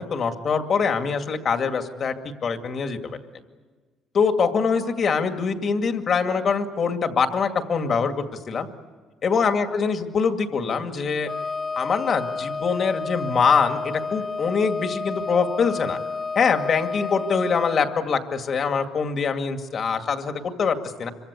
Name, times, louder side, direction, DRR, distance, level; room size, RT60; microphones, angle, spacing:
voice 1, 0.0-2.1 2.4-3.0 4.1-8.7 9.2-11.3 11.7-16.0 16.4-21.1, left 5 dB, 45° left, 6 dB, 2.2 m, -23 dB
Wind instrument woodwind instrument, 11.2-18.0, left 4 dB, 20° left, 0.7 m, -31 dB
26.5 x 24.0 x 8.3 m, 1.4 s
cardioid pair, 125°, 0 cm